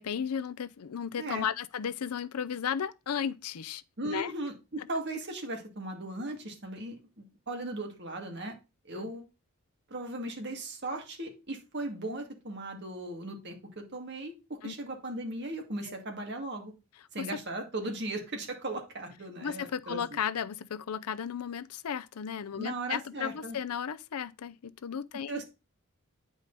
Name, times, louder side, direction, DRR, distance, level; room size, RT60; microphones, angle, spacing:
voice 1, 0.0-4.3 8.9-9.1 14.6-14.7 15.8-15.9 17.2-17.3 19.4-25.4, left 7 dB, 85° left, 0.5 m, -35 dB
voice 2, 1.2-1.5 4.0-8.5 8.8-9.3 9.9-16.7 17.1-20.2 22.6-23.6 25.3-25.4, right 2 dB, 50° right, 2.2 m, -37 dB
9.1 x 5.0 x 4.0 m
head